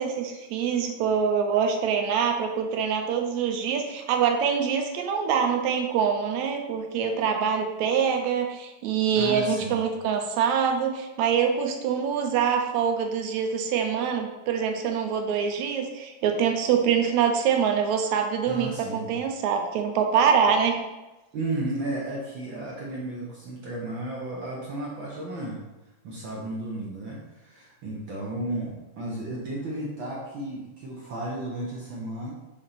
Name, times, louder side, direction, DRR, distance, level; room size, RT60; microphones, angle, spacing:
voice 1, 0.0-20.8, right 7 dB, 75° right, 4 dB, 2.1 m, -25 dB
voice 2, 9.1-9.8 18.4-19.1 21.3-25.6 26.0-32.3, right 2 dB, 55° right, -4 dB, 1.4 m, -33 dB
7.0 x 4.2 x 5.7 m, 1.1 s
omnidirectional pair, 3.4 m